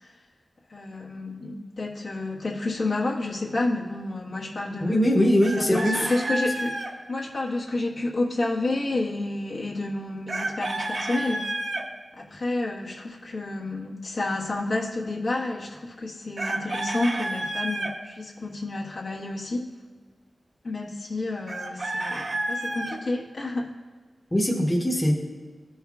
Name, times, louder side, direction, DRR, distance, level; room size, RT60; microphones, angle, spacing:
voice 1, 0.7-5.4 5.6-11.5 12.1-19.6 20.6-23.7, left 2 dB, 70° left, -4 dB, 1.4 m, -30 dB
voice 2, 4.8-6.1 24.3-25.1, equal, 15° left, -1 dB, 0.9 m, -21 dB
Chicken rooster, 5.4-6.9 10.3-11.8 16.4-17.9 21.5-23.0, right 2 dB, 60° right, 0.8 m, -30 dB
15.5 x 5.5 x 2.4 m, 1.4 s
wide cardioid pair, 110°, 0 cm